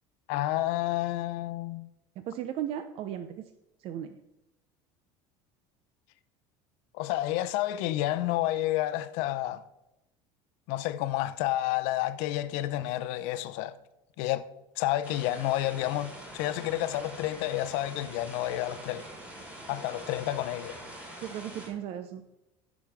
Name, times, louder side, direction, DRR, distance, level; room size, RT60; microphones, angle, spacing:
voice 1, 0.3-1.9 6.9-9.6 10.7-13.8 14.2-14.5 14.8-19.0 19.7-20.8, left 14 dB, 80° left, 0.7 m, -30 dB
voice 2, 2.2-3.3 3.8-4.2 21.2-22.2, right 10 dB, 55° right, 0.7 m, -36 dB
sound 1, 15.0-21.7, right 1 dB, 15° right, 4.1 m, -45 dB
15.0 x 6.2 x 3.6 m
supercardioid pair, 120°, 12 cm